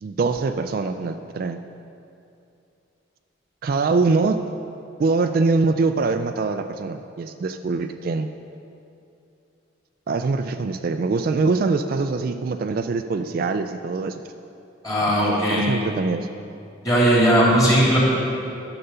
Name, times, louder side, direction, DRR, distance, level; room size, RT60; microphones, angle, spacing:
voice 1, 0.0-1.6 3.6-4.4 5.0-8.3 10.1-14.2 15.1-16.3, right 4 dB, 50° right, 8 dB, 0.3 m, -23 dB
voice 2, 14.8-15.7 16.8-18.0, equal, 20° left, -6 dB, 2.7 m, -18 dB
11.5 x 6.9 x 5.5 m, 2.7 s
head